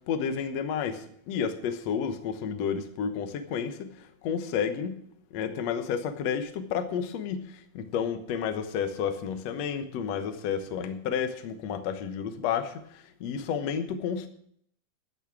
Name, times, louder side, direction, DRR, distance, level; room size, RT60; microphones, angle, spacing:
voice 1, 0.1-3.9 4.2-4.9 5.3-7.4 7.7-12.7 13.2-14.3, left 7 dB, 70° left, 8 dB, 1.6 m, -31 dB
13.5 x 8.6 x 6.0 m, 0.66 s
omnidirectional pair, 4.6 m